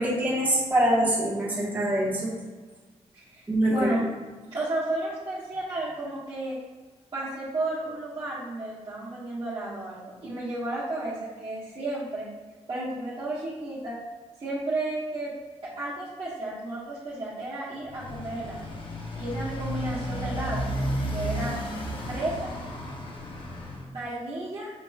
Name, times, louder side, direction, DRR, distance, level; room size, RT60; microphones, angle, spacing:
voice 1, 0.0-2.3 3.5-3.9, right 1 dB, 15° right, -6 dB, 1.2 m, -24 dB
voice 2, 3.1-3.4 3.7-4.1 4.5-6.6 7.1-12.3 12.7-14.0 14.4-15.3 15.6-18.7 19.2-20.7 21.1-21.6 22.1-22.5 23.9-24.7, right 2 dB, 45° right, -11 dB, 1.3 m, -32 dB
Motorcycle, 17.8-23.9, equal, 45° left, 0.8 m, -33 dB
5.7 x 3.0 x 2.4 m, 1.3 s
cardioid pair, 65°, 12 cm